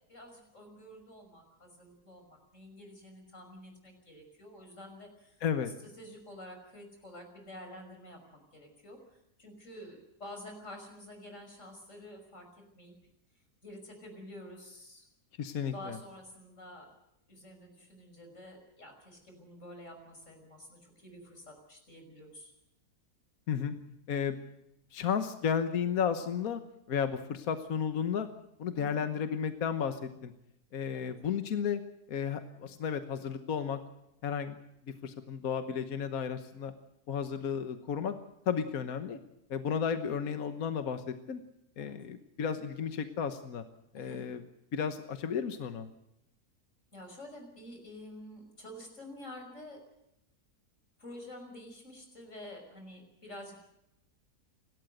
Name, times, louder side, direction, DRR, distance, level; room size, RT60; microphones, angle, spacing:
voice 1, 0.1-5.4 5.8-12.5 12.7-12.9 13.6-15.1 15.7-16.9 17.3-22.5 28.7-29.0 30.9-31.1 41.8-41.9 43.9-44.2 46.9-49.8 51.0-53.5, left 1 dB, 50° left, 4 dB, 6.3 m, -49 dB
voice 2, 15.4-16.0 23.5-23.8 24.1-24.4 24.9-26.6 26.9-28.3 28.6-30.3 30.7-31.8 32.1-33.8 34.2-34.6 34.9-36.7 37.1-38.2 38.5-39.2 39.5-41.4 41.8-43.6 43.9-44.4 44.7-45.9, left 7 dB, 65° left, 8 dB, 1.5 m, -33 dB
29.5 x 13.0 x 7.9 m, 0.83 s
omnidirectional pair, 1.6 m